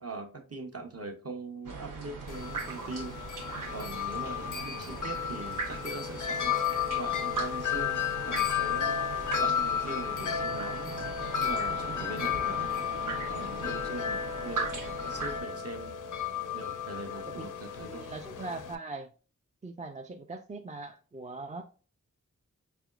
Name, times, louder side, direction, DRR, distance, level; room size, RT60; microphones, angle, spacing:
voice 1, 0.0-3.2 3.7-6.6 6.9-9.0 9.3-11.0 11.4-12.7 13.3-16.0 16.5-18.1, right 2 dB, 50° right, 0.9 m, -41 dB
sound 1, 1.6-15.4, right 4 dB, 80° right, 0.9 m, -39 dB
Wind chime, 2.3-18.7, left 8 dB, 75° left, 0.4 m, -33 dB
voice 2, 17.8-19.1 19.6-21.6, right 3 dB, 25° right, 0.3 m, -41 dB
4.5 x 3.4 x 2.4 m
wide cardioid pair, 60°, 31 cm